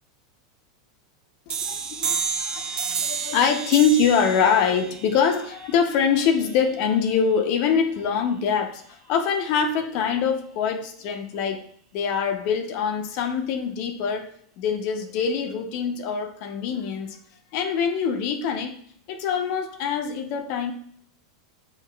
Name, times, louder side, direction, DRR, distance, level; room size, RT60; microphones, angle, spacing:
voice 1, 1.5-11.7 11.9-14.3 14.6-17.2 17.5-18.7 19.1-20.7, left 6 dB, 55° left, 5 dB, 0.6 m, -24 dB
sound 1, 1.5-6.9, right 6 dB, 35° right, 0.5 m, -31 dB
5.8 x 2.4 x 2.2 m, 0.62 s
hypercardioid pair, 90°, 2 cm